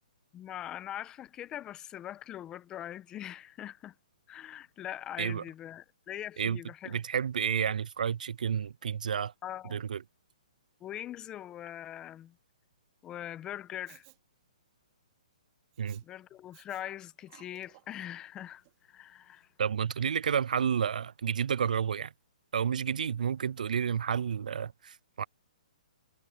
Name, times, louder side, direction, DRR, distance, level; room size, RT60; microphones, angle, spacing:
voice 1, 0.3-3.9 4.3-7.0 9.4-9.8 10.8-12.3 13.0-14.1 16.0-19.5, left 11 dB, 15° left, 1.3 m, -42 dB
voice 2, 6.9-9.3 9.7-10.0 15.8-16.0 19.6-22.1 22.5-25.2, right 7 dB, 75° right, 0.5 m, -30 dB
Respiratory sounds, 13.9-14.2 15.7-16.0 16.5-16.8 17.2-18.0 18.6-18.7, right 25 dB, 35° right, 3.7 m, -58 dB
hypercardioid pair, 150°, 4 cm